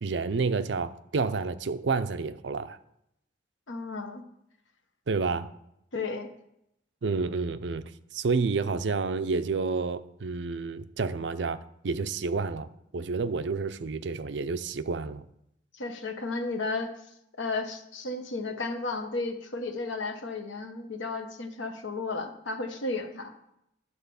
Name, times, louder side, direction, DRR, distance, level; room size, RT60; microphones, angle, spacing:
voice 1, 0.0-2.8 5.1-5.5 7.0-7.8 8.1-11.6 11.8-12.7 12.9-15.3, right 4 dB, 65° right, 0.5 m, -29 dB
voice 2, 3.7-4.2 5.9-6.3 15.7-16.9 17.4-23.3, left 3 dB, 90° left, 1.0 m, -33 dB
11.0 x 4.1 x 6.9 m
head